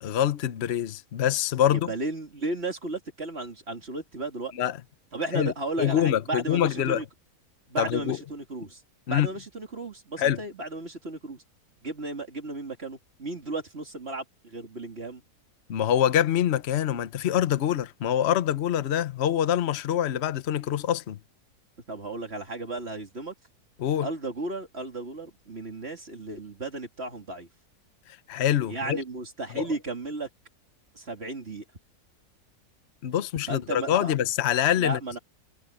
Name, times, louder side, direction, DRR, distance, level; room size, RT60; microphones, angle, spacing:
voice 1, 0.0-1.9 4.6-4.8 5.3-5.5 5.8-7.0 7.8-8.2 9.1-9.3 10.2-10.4 15.7-21.2 23.8-24.1 28.3-29.0 29.5-29.6 33.0-35.2, left 10 dB, 50° left, 1.0 m, -25 dB
voice 2, 1.7-4.5 5.1-7.0 7.7-8.8 9.1-11.4 11.8-15.2 21.9-23.3 24.0-27.5 28.7-30.3 30.9-31.6 33.5-34.1 34.8-35.2, right 2 dB, 40° right, 3.1 m, -34 dB
omnidirectional pair, 1.6 m